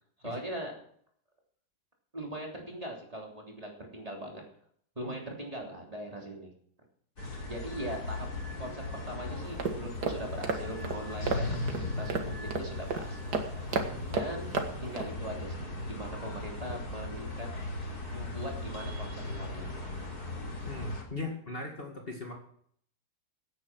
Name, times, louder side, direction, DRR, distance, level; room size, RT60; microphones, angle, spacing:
voice 1, 0.2-0.7 2.1-4.4 4.9-6.5 7.4-8.3 8.6-13.7 14.1-14.5 14.8-17.5 17.8-19.9 21.2-21.3, right 1 dB, 20° right, 0 dB, 3.4 m, -41 dB
sound 1, 7.2-21.0, left 2 dB, 70° left, 4.0 m, -38 dB
sound 2, 9.4-15.1, right 4 dB, 80° right, 2.1 m, -35 dB
voice 2, 20.7-22.3, left 2 dB, 35° left, 1 dB, 2.3 m, -39 dB
16.5 x 9.6 x 6.2 m, 0.64 s
omnidirectional pair, 1.7 m